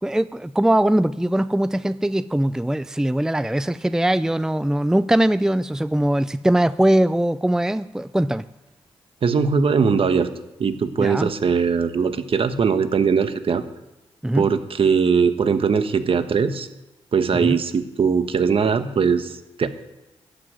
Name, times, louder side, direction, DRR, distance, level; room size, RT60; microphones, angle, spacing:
voice 1, 0.0-8.5 11.0-11.3 14.2-14.5 17.3-17.6, right 1 dB, 5° right, 15 dB, 0.5 m, -21 dB
voice 2, 9.2-10.3 10.6-13.6 14.3-16.7 17.1-19.7, right 5 dB, 55° right, 10 dB, 1.4 m, -20 dB
14.5 x 6.1 x 9.4 m, 0.96 s
supercardioid pair, 45°, 11 cm